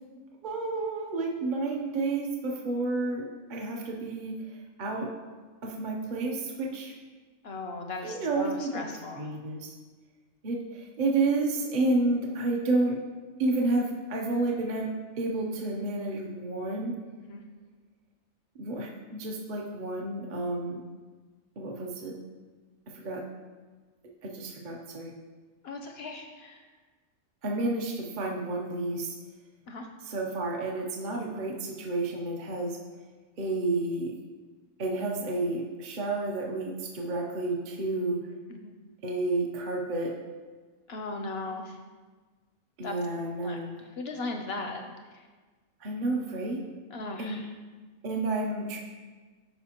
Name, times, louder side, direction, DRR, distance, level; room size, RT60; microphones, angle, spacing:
voice 1, 0.4-3.2 3.5-5.1 5.6-6.9 8.0-8.7 9.2-9.7 10.4-13.0 13.4-16.9 18.5-20.8 21.6-22.2 22.9-23.2 24.2-25.1 27.4-29.2 30.0-32.8 33.4-34.2 34.8-38.2 39.0-40.1 42.8-43.7 45.8-46.6 47.2-47.4 48.0-48.8, right 2 dB, 45° right, 0 dB, 0.7 m, -30 dB
voice 2, 7.4-9.3 17.3-17.4 25.6-26.6 29.7-29.9 38.5-38.7 40.9-41.8 42.8-43.0 43.4-44.8 45.1-45.3 46.9-47.5, left 3 dB, 60° left, 4 dB, 0.7 m, -37 dB
11.0 x 4.7 x 2.9 m, 1.4 s
omnidirectional pair, 1.5 m